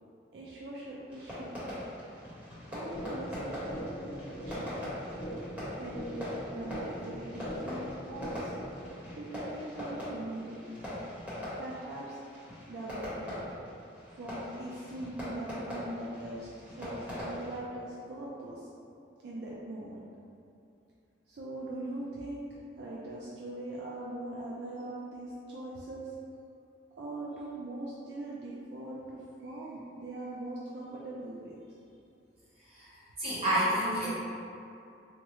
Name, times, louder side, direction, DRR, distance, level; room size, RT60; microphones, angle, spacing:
voice 1, 0.3-1.5 2.7-4.7 5.8-8.5 9.1-10.6 11.6-12.2 12.7-13.3 14.2-18.7 19.2-20.0 21.3-26.1 27.0-31.5, right 1 dB, 65° right, -6 dB, 0.4 m, -41 dB
Fireworks, 1.1-17.6, left 1 dB, 10° right, 0.9 m, -41 dB
sound 1, 2.9-8.9, equal, 45° left, 0.5 m, -41 dB
voice 2, 32.7-34.1, right 1 dB, 35° right, -10 dB, 1.0 m, -29 dB
3.5 x 2.0 x 2.9 m, 2.6 s
head